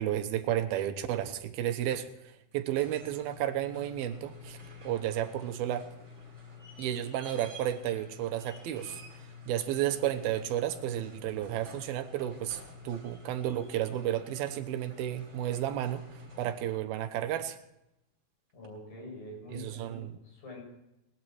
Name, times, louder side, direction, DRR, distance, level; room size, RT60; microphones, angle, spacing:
voice 1, 0.0-4.6 4.8-5.9 6.8-9.0 9.5-17.6 19.5-20.2, right 12 dB, 90° right, 9 dB, 2.9 m, -32 dB
sound 1, 2.5-16.9 18.6-18.7, left 4 dB, 20° right, 4.2 m, -49 dB
voice 2, 18.5-20.6, left 1 dB, 70° left, -2 dB, 9.1 m, -45 dB
19.0 x 12.0 x 4.6 m, 0.89 s
omnidirectional pair, 4.3 m